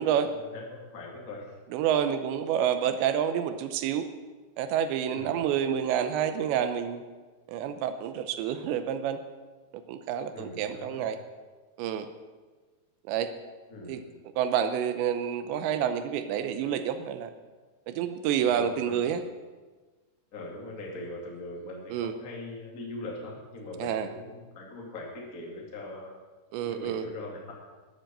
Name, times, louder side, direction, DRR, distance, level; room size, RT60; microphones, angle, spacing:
voice 1, 0.3-1.5 5.1-5.4 10.3-11.0 13.7-14.0 18.5-19.1 20.3-26.1 26.6-27.5, left 2 dB, 30° left, -1 dB, 1.7 m, -41 dB
voice 2, 1.7-4.1 4.6-7.0 7.5-9.2 9.7-11.2 11.8-12.1 13.1-13.3 13.9-14.0 14.4-17.3 17.9-19.2 21.9-22.1 23.8-24.1 26.5-27.1, right 9 dB, 85° right, 10 dB, 3.0 m, -28 dB
13.0 x 9.9 x 7.4 m, 1.3 s
omnidirectional pair, 5.1 m